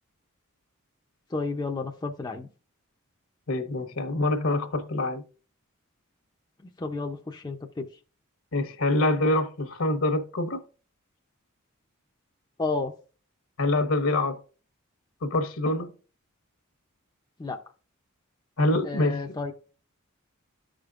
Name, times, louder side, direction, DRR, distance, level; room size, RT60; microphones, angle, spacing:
voice 1, 1.3-2.5 6.8-7.8 12.6-12.9 17.4-17.6 18.8-19.5, left 3 dB, 20° left, 0.5 m, -31 dB
voice 2, 3.5-5.2 8.5-10.6 13.6-14.4 15.2-15.9 18.6-19.2, left 2 dB, 70° left, 1.0 m, -25 dB
13.0 x 5.1 x 2.4 m
head